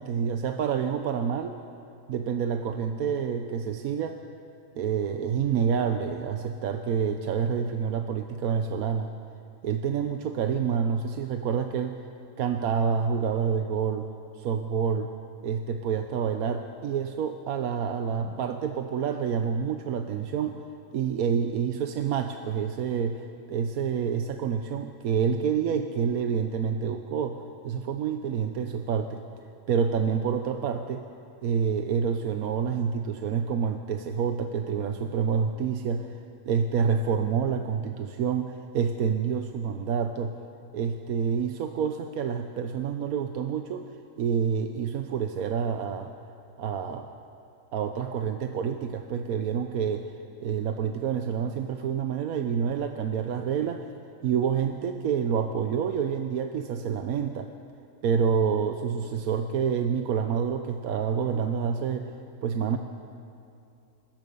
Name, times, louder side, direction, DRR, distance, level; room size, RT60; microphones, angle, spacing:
voice 1, 0.0-1.6 2.1-4.2 4.8-9.1 9.6-12.0 12.4-14.1 14.3-15.1 15.4-20.6 20.9-29.2 29.7-31.0 31.4-40.3 40.7-43.9 44.2-46.1 46.6-47.1 47.7-50.1 50.4-53.9 54.2-57.5 58.0-62.1 62.4-62.8, right 7 dB, 70° right, 7 dB, 1.2 m, -28 dB
26.0 x 21.0 x 5.4 m, 2.7 s
omnidirectional pair, 1.6 m